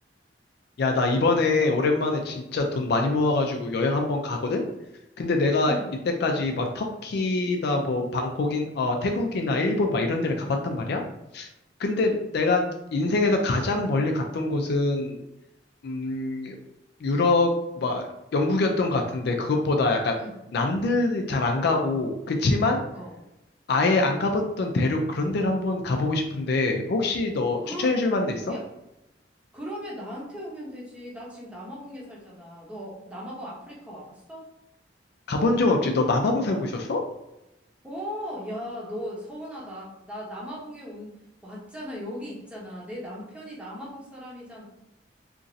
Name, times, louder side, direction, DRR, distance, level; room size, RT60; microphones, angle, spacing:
voice 1, 0.8-4.6 5.2-5.8 6.2-11.0 11.3-11.5 11.8-12.6 12.9-15.2 15.8-16.6 17.0-20.2 20.5-22.8 23.7-28.5 35.3-37.0, left 2 dB, 60° left, 3 dB, 0.4 m, -24 dB
voice 2, 5.6-5.9 11.9-12.2 20.2-20.3 22.9-23.2 27.6-27.9 28.5-28.6 29.5-34.5 37.8-41.1 41.4-44.7, equal, 5° right, -5 dB, 0.8 m, -38 dB
2.9 x 2.5 x 2.6 m, 0.89 s
head